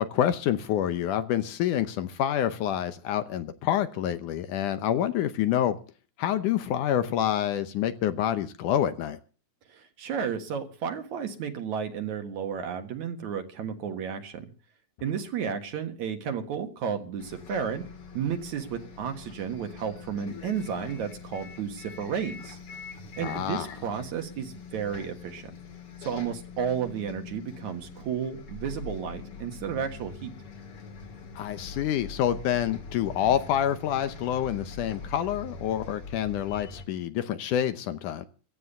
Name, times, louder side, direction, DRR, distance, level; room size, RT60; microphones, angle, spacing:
voice 1, 0.0-5.8 6.2-9.2 23.2-23.7 31.4-38.2, left 10 dB, 75° left, 2.3 m, -27 dB
voice 2, 9.7-14.5 15.0-17.8 18.1-22.6 23.2-25.5 26.0-30.3, right 7 dB, 60° right, 2.7 m, -32 dB
Bus, 17.2-36.8, left 4 dB, 45° left, 2.8 m, -43 dB
15.5 x 10.5 x 6.8 m
omnidirectional pair, 3.9 m